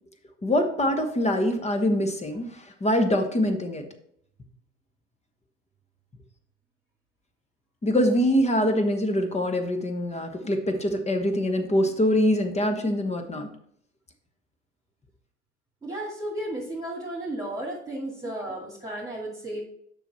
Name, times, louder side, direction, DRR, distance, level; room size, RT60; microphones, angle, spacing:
voice 1, 0.4-2.5 2.8-3.8 7.8-13.5, equal, 20° left, 7 dB, 1.1 m, -24 dB
voice 2, 15.8-19.6, right 1 dB, 10° right, -4 dB, 2.3 m, -33 dB
6.9 x 5.7 x 4.2 m, 0.67 s
hypercardioid pair, 70°, 35 cm